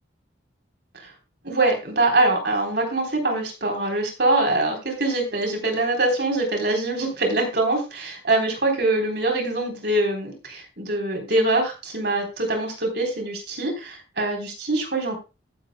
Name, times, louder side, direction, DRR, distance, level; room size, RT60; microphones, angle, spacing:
voice 1, 1.4-8.0 8.3-15.2, right 2 dB, 60° right, 2 dB, 3.7 m, -23 dB
15.5 x 8.2 x 2.2 m, 0.28 s
head